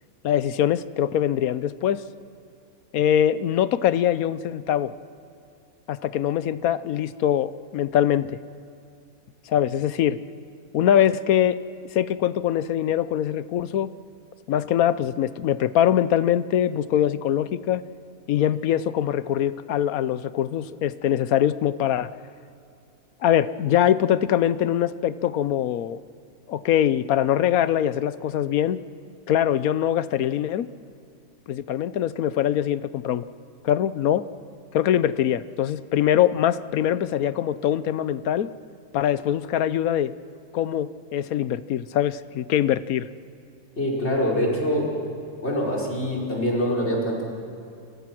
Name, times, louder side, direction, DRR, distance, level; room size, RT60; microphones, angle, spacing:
voice 1, 0.2-2.0 2.9-4.9 5.9-8.4 9.5-10.2 10.7-11.6 11.9-13.9 14.5-17.8 18.3-22.1 23.2-26.0 26.5-28.8 29.3-30.7 31.5-33.2 33.6-34.2 34.7-38.5 38.9-40.1 40.5-43.1, left 10 dB, 80° left, 15 dB, 1.2 m, -23 dB
voice 2, 43.8-44.9 45.4-47.2, equal, 50° left, -2 dB, 5.1 m, -24 dB
30.0 x 23.0 x 6.1 m, 2.5 s
omnidirectional pair, 1.5 m